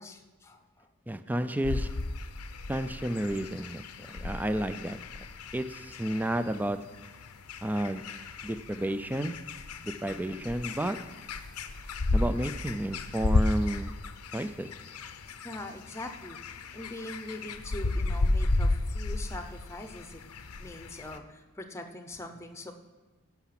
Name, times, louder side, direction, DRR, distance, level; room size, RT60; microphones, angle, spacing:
voice 1, 0.0-0.9 10.3-10.5 15.4-16.4 16.7-20.2 20.6-22.7, left 1 dB, 10° left, 6 dB, 0.7 m, -42 dB
voice 2, 1.1-1.9 2.7-5.0 5.5-6.8 7.6-8.0 8.4-9.4 9.8-11.0 12.1-13.9 14.3-14.7, right 1 dB, 10° right, 11 dB, 0.3 m, -31 dB
sound 1, 1.6-21.2, left 2 dB, 90° left, 0.7 m, -33 dB
16.0 x 5.8 x 5.9 m, 1.2 s
head